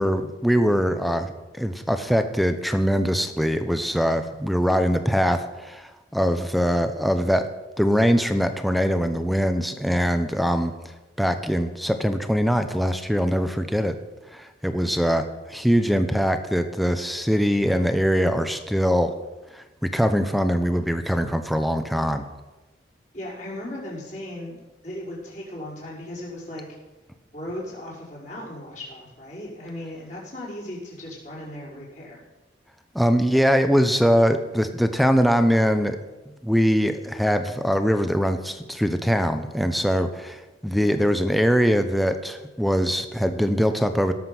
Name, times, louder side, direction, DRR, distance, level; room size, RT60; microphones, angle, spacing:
voice 1, 0.0-7.5 7.8-10.7 11.2-13.9 14.3-19.1 19.5-22.2 32.9-36.0 36.4-44.1, equal, ahead, 8 dB, 0.8 m, -22 dB
voice 2, 23.1-26.6 27.3-32.2 40.7-41.0, left 1 dB, 45° left, -7 dB, 5.6 m, -37 dB
17.0 x 7.4 x 6.1 m, 1.1 s
head